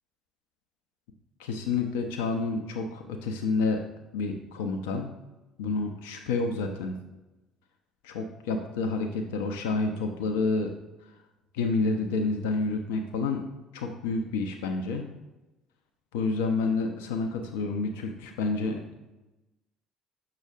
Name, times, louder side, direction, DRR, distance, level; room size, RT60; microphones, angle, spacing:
voice 1, 1.4-3.8 4.1-5.1 5.6-6.9 8.0-10.7 11.5-13.4 13.7-15.0 16.1-18.8, left 3 dB, 70° left, 4 dB, 0.5 m, -29 dB
6.5 x 6.2 x 2.4 m, 1.0 s
figure-of-eight pair, 55°, 0 cm